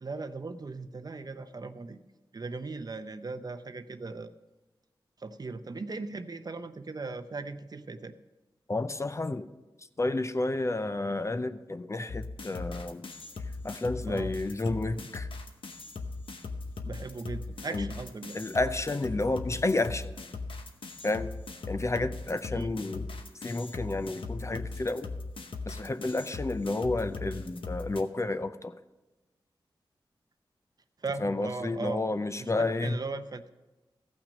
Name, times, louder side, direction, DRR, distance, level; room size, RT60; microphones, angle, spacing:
voice 1, 0.0-2.0 2.3-4.3 5.2-8.1 14.1-14.3 16.8-18.4 22.5-22.7 31.0-32.0 32.4-33.5, right 3 dB, 45° right, 11 dB, 0.6 m, -38 dB
voice 2, 8.7-9.5 10.0-13.1 13.6-15.3 17.7-17.9 18.3-20.1 21.0-21.3 21.7-23.1 23.4-25.1 25.7-28.7 31.2-33.0, left 2 dB, 30° left, 11 dB, 0.5 m, -31 dB
sound 1, 12.1-28.0, left 3 dB, 70° left, 0.9 m, -39 dB
14.5 x 6.0 x 5.2 m, 1.1 s
cardioid pair, 50°, 9 cm